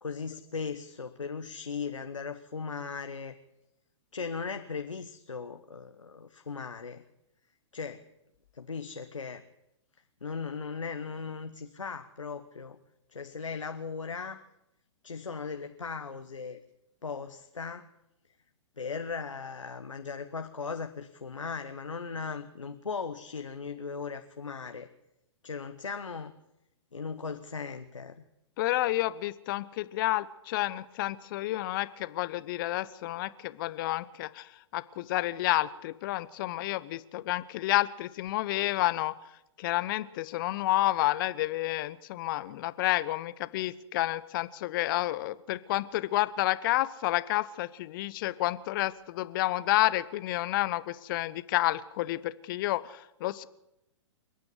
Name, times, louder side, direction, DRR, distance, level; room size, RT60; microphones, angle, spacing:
voice 1, 0.0-3.3 4.1-7.0 7.7-8.0 8.5-9.4 10.2-12.8 13.1-14.4 15.0-16.6 17.0-17.9 18.8-24.9 25.4-26.3 26.9-28.2, left 5 dB, 80° left, 7 dB, 1.3 m, -38 dB
voice 2, 28.6-39.1 39.6-53.5, left 16 dB, 45° left, 16 dB, 1.0 m, -30 dB
28.5 x 9.5 x 9.9 m, 0.87 s
figure-of-eight pair, 115°, 16 cm